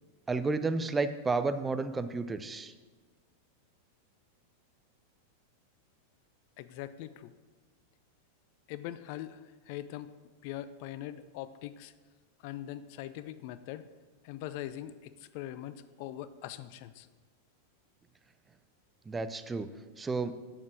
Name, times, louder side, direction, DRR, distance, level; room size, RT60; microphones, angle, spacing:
voice 1, 0.3-2.7 19.1-19.7 20.0-20.3, right 3 dB, 15° right, 11 dB, 0.5 m, -31 dB
voice 2, 6.6-7.3 8.7-9.4 9.7-10.1 10.4-11.9 12.4-13.9 14.2-17.1, left 13 dB, 45° left, 14 dB, 0.4 m, -42 dB
8.7 x 6.6 x 6.1 m, 1.4 s
figure-of-eight pair, 90°, 0 cm